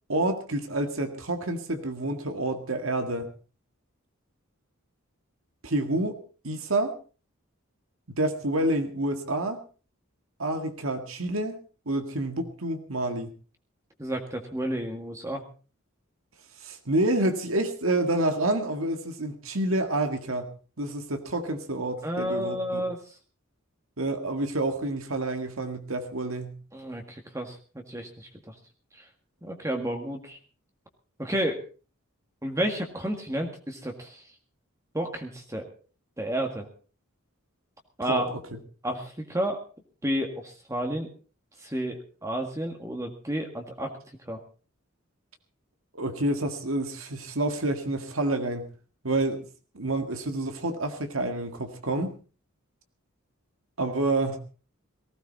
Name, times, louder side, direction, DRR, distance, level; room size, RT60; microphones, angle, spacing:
voice 1, 0.1-3.3 5.6-6.2 6.4-6.9 8.1-9.6 10.4-11.6 11.9-13.3 16.6-20.5 20.8-22.8 24.0-26.6 38.0-38.6 45.9-48.7 49.0-49.4 49.8-52.1 53.8-54.4, right 1 dB, 75° right, 6 dB, 1.8 m, -28 dB
voice 2, 14.0-15.4 22.0-23.0 26.7-28.5 28.9-29.0 29.4-30.4 31.2-31.6 32.4-34.2 34.9-35.7 36.2-36.7 38.0-38.3 38.8-39.6 40.0-41.1 41.6-44.0 44.2-44.4, right 1 dB, 15° right, 3 dB, 1.7 m, -31 dB
18.5 x 16.0 x 4.1 m, 0.36 s
head